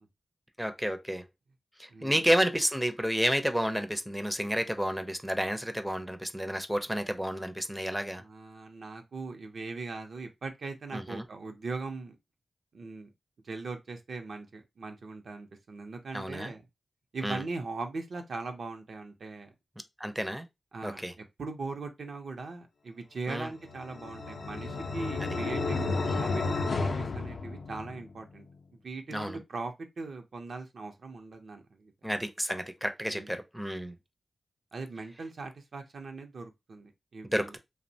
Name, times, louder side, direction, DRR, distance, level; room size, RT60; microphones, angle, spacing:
voice 1, 0.6-1.2 1.8-8.2 10.9-11.2 16.1-16.5 17.2-17.4 20.0-20.5 20.8-21.1 23.3-23.5 26.0-26.3 29.1-29.4 32.0-33.9 37.3-37.6, equal, 5° right, 0.4 m, -30 dB
voice 2, 1.9-2.2 8.2-12.2 12.7-13.1 13.4-16.6 17.1-19.5 20.7-26.4 26.8-28.5 28.8-31.9 33.1-33.4 34.7-37.5, right 3 dB, 75° right, 0.5 m, -40 dB
sound 1, 23.6-28.1, left 3 dB, 75° left, 0.4 m, -32 dB
2.8 x 2.0 x 2.6 m
cardioid pair, 65°, 0 cm